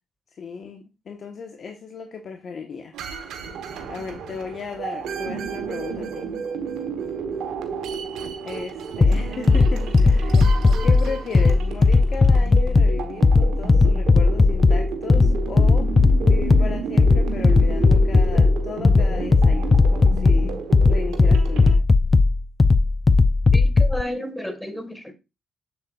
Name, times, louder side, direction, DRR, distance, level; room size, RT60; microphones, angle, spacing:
voice 1, 0.4-2.9 3.3-3.5 3.9-6.2 8.4-15.9 16.3-20.5 20.9-21.8, left 5 dB, 60° left, 1.2 m, -35 dB
sound 1, 2.9-21.8, right 6 dB, 80° right, 1.1 m, -32 dB
sound 2, 9.0-24.0, left 3 dB, 30° left, 0.5 m, -17 dB
voice 2, 23.5-25.1, equal, 5° left, 1.6 m, -32 dB
7.3 x 7.1 x 2.4 m
cardioid pair, 70°, 0 cm